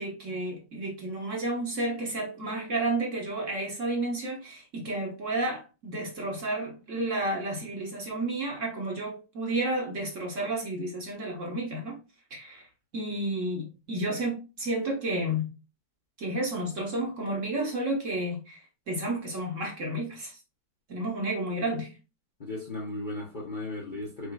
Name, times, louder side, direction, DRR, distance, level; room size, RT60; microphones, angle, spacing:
voice 1, 0.0-12.0 12.3-12.7 12.9-15.5 16.2-20.4 20.9-21.9, right 1 dB, 45° right, 1.3 m, -31 dB
voice 2, 22.4-24.3, left 2 dB, 40° left, 0.8 m, -36 dB
4.8 x 4.5 x 2.3 m
omnidirectional pair, 2.1 m